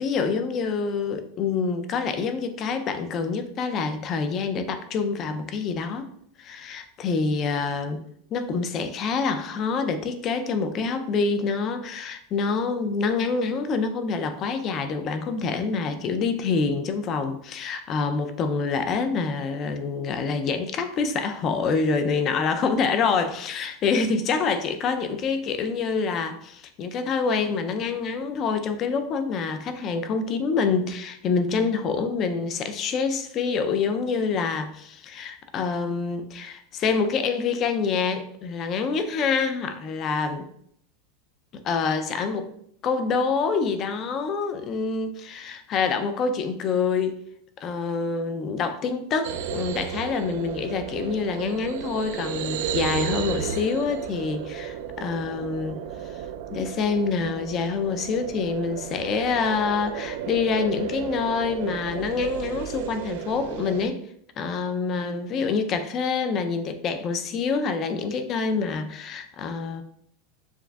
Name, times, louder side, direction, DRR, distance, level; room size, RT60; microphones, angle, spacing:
voice 1, 0.0-6.1 6.4-8.0 8.3-40.5 41.6-42.5 42.8-47.2 47.6-55.8 56.1-56.2 56.5-64.0 64.4-69.8, left 5 dB, 30° left, 8 dB, 0.4 m, -26 dB
sound 1, 49.2-63.9, right 8 dB, 70° right, 0.3 m, -33 dB
7.0 x 2.5 x 2.3 m, 0.68 s
supercardioid pair, 160°, 0 cm